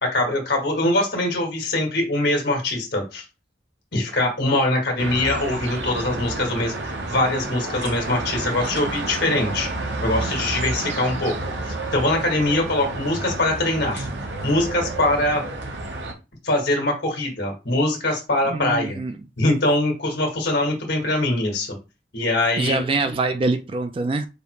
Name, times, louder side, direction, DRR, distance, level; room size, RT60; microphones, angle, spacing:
voice 1, 0.0-3.2 3.9-9.7 10.0-11.3 11.7-14.1 14.4-15.4 16.4-19.0 19.4-21.7 22.1-23.1, left 1 dB, 70° left, 1.6 m, -23 dB
sound 1, 5.0-16.1, right 2 dB, 85° right, 1.0 m, -30 dB
voice 2, 18.5-19.2 22.6-24.3, right 3 dB, 30° right, 0.3 m, -24 dB
5.1 x 2.1 x 4.7 m
head